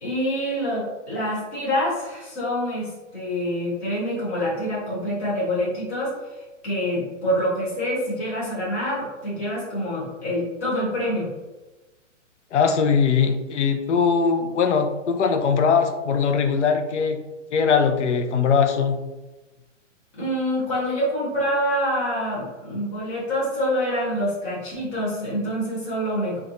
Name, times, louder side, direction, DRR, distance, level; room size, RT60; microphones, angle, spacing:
voice 1, 0.0-6.1 6.6-11.3 20.2-26.4, equal, 10° left, -8 dB, 0.5 m, -26 dB
voice 2, 12.5-17.2 17.5-19.0, left 6 dB, 70° left, 6 dB, 0.5 m, -21 dB
4.0 x 2.3 x 2.5 m, 1.1 s
hypercardioid pair, 165°, 37 cm